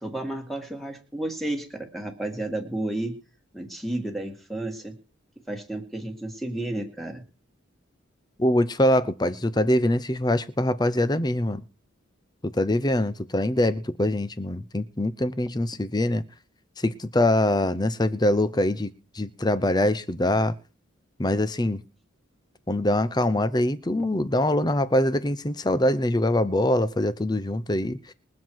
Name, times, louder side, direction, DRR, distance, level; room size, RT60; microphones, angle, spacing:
voice 1, 0.0-3.2 3.5-5.0 5.5-7.2, right 1 dB, ahead, 2.0 m, -32 dB
voice 2, 8.4-11.6 12.4-16.2 16.8-20.5 21.2-21.8 22.7-28.1, left 1 dB, 20° left, 0.8 m, -24 dB
22.0 x 7.5 x 4.7 m
head